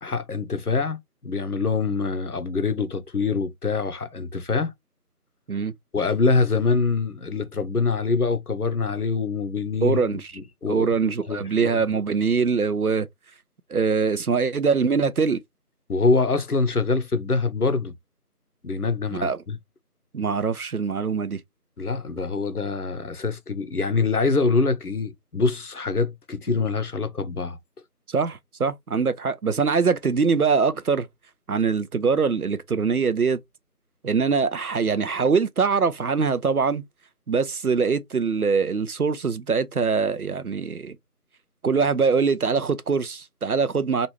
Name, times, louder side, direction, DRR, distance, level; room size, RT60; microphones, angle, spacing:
voice 1, 0.0-4.7 5.9-10.9 11.3-11.8 15.9-17.9 18.6-19.6 21.8-27.6, left 4 dB, 65° left, 0.8 m, -25 dB
voice 2, 9.8-10.3 10.7-13.1 13.7-15.4 19.2-19.4 20.1-21.4 28.1-31.1 31.5-33.4 34.0-36.8 37.3-41.0 41.6-44.1, right 5 dB, 65° right, 0.5 m, -23 dB
3.1 x 2.5 x 3.0 m
figure-of-eight pair, 175°, 48 cm